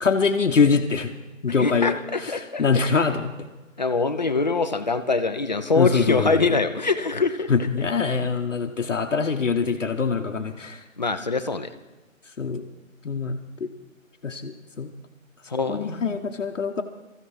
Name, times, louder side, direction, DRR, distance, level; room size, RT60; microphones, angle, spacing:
voice 1, 0.0-1.1 1.4-3.5 5.7-6.4 7.5-10.8 12.4-12.6 13.0-13.7 14.2-14.9 15.7-16.8, left 5 dB, 65° left, 3 dB, 1.1 m, -24 dB
voice 2, 1.5-2.9 3.8-7.7 11.0-11.7 15.5-16.2, left 4 dB, 35° left, 8 dB, 0.6 m, -24 dB
25.5 x 14.5 x 3.2 m, 1.1 s
figure-of-eight pair, 160°, 40 cm